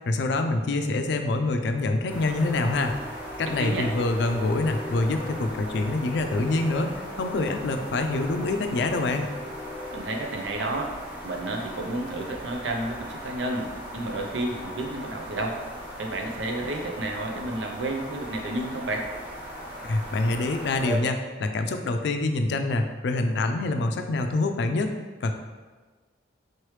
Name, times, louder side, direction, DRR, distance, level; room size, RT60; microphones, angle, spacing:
voice 1, 0.1-2.9 3.4-9.3 19.8-24.9 25.2-25.3, left 2 dB, 70° left, 6 dB, 0.4 m, -26 dB
sound 1, 2.1-21.0, equal, 10° right, 1.1 m, -38 dB
voice 2, 9.9-10.9 11.2-15.6 16.0-19.1, right 2 dB, 85° right, 2 dB, 0.6 m, -31 dB
4.4 x 3.1 x 3.2 m, 1.3 s
head